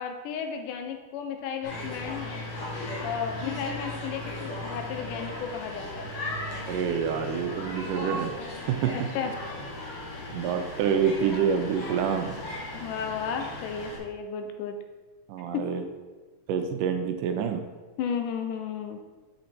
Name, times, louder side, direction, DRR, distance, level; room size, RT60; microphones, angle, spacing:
voice 1, 0.0-2.3 3.0-6.1 8.9-9.4 12.7-14.8 15.5-15.7 18.0-19.0, left 7 dB, 85° left, 6 dB, 2.2 m, -33 dB
sound 1, 1.6-14.0, left 1 dB, 60° left, 2.3 m, -37 dB
voice 2, 6.7-8.4 8.7-8.9 10.3-12.4 15.3-15.8 16.5-17.6, right 7 dB, 85° right, 6 dB, 2.1 m, -27 dB
6.2 x 5.3 x 4.3 m, 1.3 s
omnidirectional pair, 3.7 m